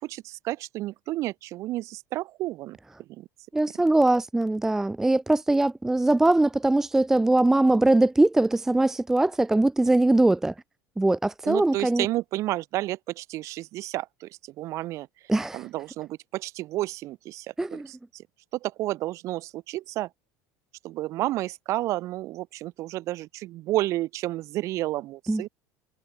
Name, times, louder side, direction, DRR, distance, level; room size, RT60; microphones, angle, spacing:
voice 1, 0.0-3.3 11.5-15.1 15.5-18.3 18.6-20.1 20.8-25.5, right 16 dB, 50° right, 5.5 m, -31 dB
voice 2, 3.5-10.5 11.0-12.1 15.3-15.6 17.6-17.9 25.3-25.5, right 2 dB, 5° right, 0.6 m, -21 dB
cardioid pair, 145°, 7 cm